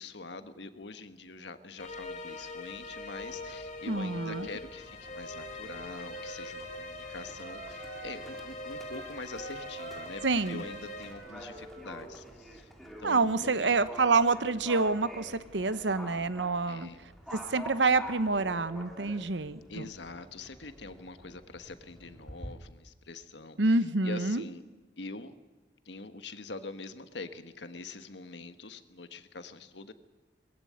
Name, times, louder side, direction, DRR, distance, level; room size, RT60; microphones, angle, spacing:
voice 1, 0.0-13.7 16.7-17.1 19.7-24.6 25.0-25.4 25.8-29.9, left 3 dB, 75° left, 10 dB, 1.4 m, -44 dB
sound 1, 1.8-11.1, left 2 dB, 40° left, 3.0 m, -42 dB
Livestock farm animals working animals, 3.2-22.5, equal, ahead, 2.6 m, -48 dB
voice 2, 3.9-4.5 10.2-10.6 13.0-16.9 17.3-19.8 23.6-24.4, right 3 dB, 85° right, 14 dB, 1.0 m, -27 dB
Wind instrument woodwind instrument, 5.2-8.5 8.8-12.3, right 4 dB, 55° right, 3.1 m, -49 dB
21.5 x 15.0 x 9.4 m, 1.2 s
head